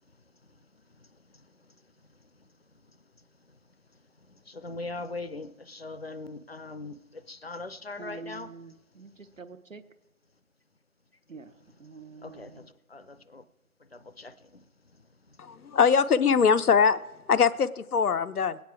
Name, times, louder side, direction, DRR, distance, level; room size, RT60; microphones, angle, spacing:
voice 1, 4.5-8.5 12.2-13.4 13.9-14.4, left 3 dB, 45° left, 0.6 m, -40 dB
voice 2, 8.0-9.9 11.3-12.7, right 4 dB, 60° right, 0.9 m, -46 dB
voice 3, 15.4-17.0 17.3-18.6, left 6 dB, 85° left, 0.7 m, -22 dB
20.5 x 9.3 x 4.6 m
figure-of-eight pair, 165°, 44 cm